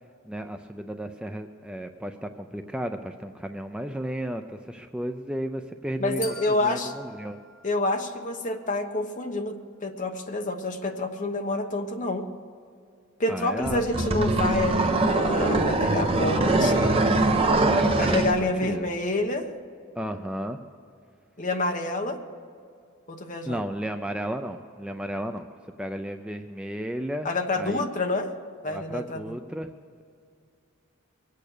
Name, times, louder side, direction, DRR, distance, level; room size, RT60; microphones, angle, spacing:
voice 1, 0.2-7.4 13.3-13.9 18.0-18.9 20.0-20.6 23.5-25.5 25.8-27.3 27.6-27.9 28.7-29.7, equal, 5° right, 6 dB, 0.4 m, -33 dB
voice 2, 6.0-6.9 7.6-9.6 9.8-12.2 13.2-16.9 18.0-19.5 21.4-22.2 23.1-23.6 27.2-28.3 28.6-29.3, left 2 dB, 35° left, 4 dB, 1.1 m, -28 dB
sound 1, 6.2-8.5, left 3 dB, 60° left, 3.1 m, -44 dB
sound 2, 13.7-18.4, right 2 dB, 25° right, 1.0 m, -22 dB
23.0 x 8.6 x 6.6 m, 2.4 s
head